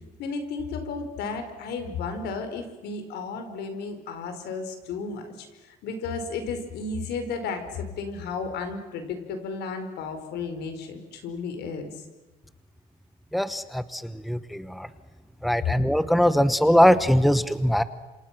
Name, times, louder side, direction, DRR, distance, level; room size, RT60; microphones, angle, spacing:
voice 1, 0.2-11.9, left 4 dB, 80° left, 7 dB, 4.8 m, -33 dB
voice 2, 13.3-14.9 15.4-17.8, equal, ahead, 13 dB, 1.0 m, -21 dB
27.5 x 27.0 x 6.0 m, 1.2 s
cardioid pair, 110°, 17 cm